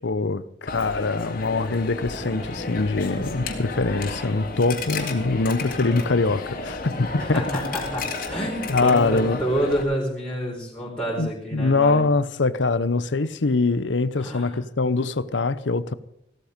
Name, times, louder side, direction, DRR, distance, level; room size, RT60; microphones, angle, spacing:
voice 1, 0.0-7.4 8.7-9.4 11.2-15.9, left 3 dB, 75° left, 0.8 m, -23 dB
Coin (dropping), 0.7-9.8, left 3 dB, 50° left, 2.6 m, -32 dB
voice 2, 7.2-12.0 14.2-14.6, equal, 5° left, 4.4 m, -28 dB
16.0 x 13.0 x 5.2 m
head